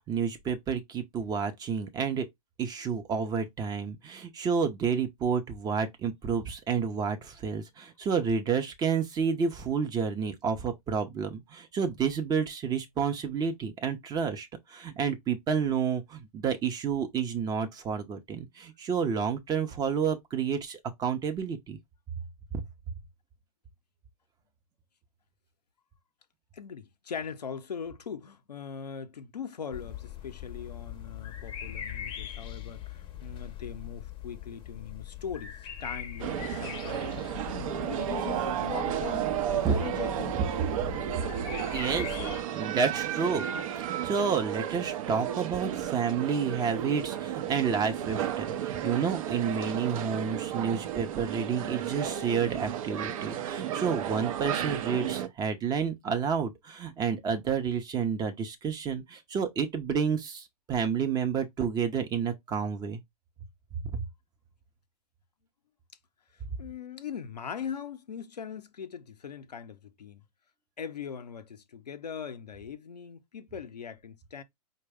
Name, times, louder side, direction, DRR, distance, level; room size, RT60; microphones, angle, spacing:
voice 1, 0.1-2.3 2.6-21.8 22.5-22.6 39.6-39.7 41.7-43.5 43.7-63.0 63.9-64.0, right 6 dB, 20° right, 0.6 m, -30 dB
voice 2, 26.5-37.1 37.5-40.4 66.6-70.2 70.8-74.4, left 7 dB, 90° left, 0.6 m, -40 dB
sound 1, 29.7-42.4, left 11 dB, 25° left, 0.6 m, -41 dB
sound 2, 36.2-55.3, right 10 dB, 55° right, 0.7 m, -33 dB
4.6 x 2.2 x 3.4 m
hypercardioid pair, 115°, 20 cm